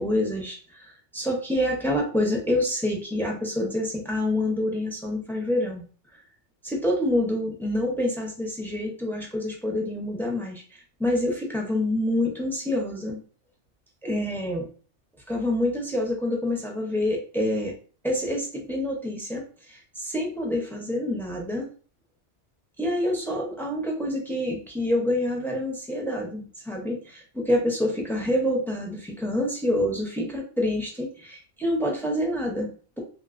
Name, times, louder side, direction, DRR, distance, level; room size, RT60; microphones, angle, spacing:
voice 1, 0.0-5.8 6.6-13.2 14.0-14.7 15.3-17.7 18.0-21.7 22.8-33.0, left 1 dB, 5° left, 0 dB, 0.5 m, -27 dB
3.0 x 2.9 x 2.5 m, 0.40 s
omnidirectional pair, 1.2 m